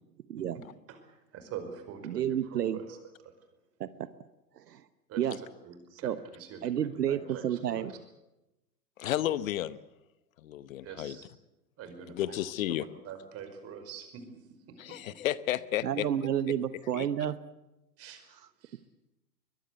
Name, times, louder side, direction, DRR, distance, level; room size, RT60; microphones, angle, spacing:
voice 1, 0.3-0.6 2.0-2.8 3.8-4.1 4.6-4.8 5.2-5.4 6.0-6.2 6.6-7.9 15.8-17.5, right 10 dB, 70° right, 14 dB, 1.2 m, -30 dB
voice 2, 0.9-3.0 3.2-3.3 5.1-8.0 10.8-11.3 11.8-12.4 12.7-14.2 14.7-15.2 18.0-18.2 18.6-18.8, right 7 dB, 30° right, 8 dB, 5.2 m, -45 dB
voice 3, 9.0-9.8 10.4-11.2 12.2-12.9 14.8-16.1 16.9-17.1, left 13 dB, 55° left, 17 dB, 1.0 m, -32 dB
22.5 x 21.5 x 8.2 m, 0.95 s
hypercardioid pair, 115°, 50 cm